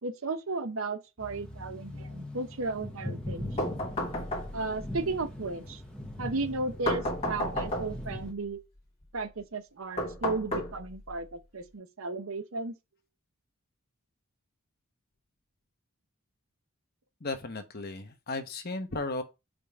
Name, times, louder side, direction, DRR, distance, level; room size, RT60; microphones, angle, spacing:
voice 1, 0.0-3.5 4.5-5.8 6.2-8.7 9.1-12.7, right 3 dB, 70° right, 0.8 m, -34 dB
sound 1, 1.2-8.3, left 1 dB, 5° left, 1.3 m, -41 dB
sound 2, 3.6-4.8 6.9-8.1 10.0-11.1, left 1 dB, 30° left, 2.0 m, -32 dB
voice 2, 17.2-19.2, left 2 dB, 45° left, 1.0 m, -35 dB
5.2 x 3.7 x 5.3 m
head